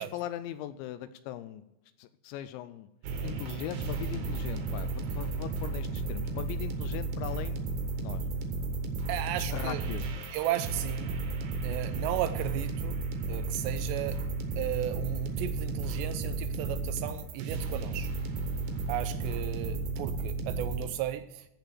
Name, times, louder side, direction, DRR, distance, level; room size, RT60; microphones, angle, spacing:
voice 1, 0.0-1.6 2.0-2.9 3.2-8.2 9.0-9.2 9.5-10.1, left 12 dB, 80° left, 13 dB, 2.7 m, -40 dB
sound 1, 3.0-20.9, right 3 dB, 65° right, 2.9 m, -33 dB
voice 2, 9.1-9.8 10.3-11.2 11.6-13.0 13.3-14.2 14.6-18.1 18.9-21.5, right 13 dB, 85° right, 12 dB, 2.5 m, -34 dB
15.0 x 5.3 x 7.4 m, 0.91 s
omnidirectional pair, 5.5 m